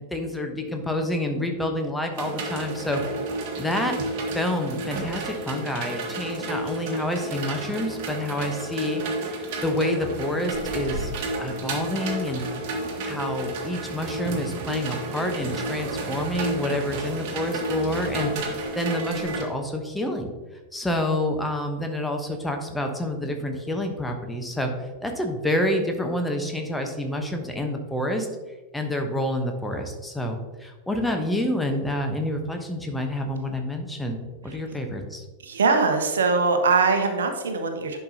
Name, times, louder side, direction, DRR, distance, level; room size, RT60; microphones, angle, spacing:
voice 1, 0.0-3.0 3.6-4.0 4.3-9.0 9.3-11.1 11.4-12.4 13.0-20.3 20.7-28.3 28.7-35.2, left 1 dB, 5° left, 4 dB, 1.1 m, -28 dB
sound 1, 2.1-19.4, right 2 dB, 45° right, 1.5 m, -31 dB
voice 2, 35.4-38.0, right 4 dB, 65° right, 5 dB, 1.0 m, -22 dB
10.5 x 5.7 x 2.9 m, 1.2 s
figure-of-eight pair, 90°, 0 cm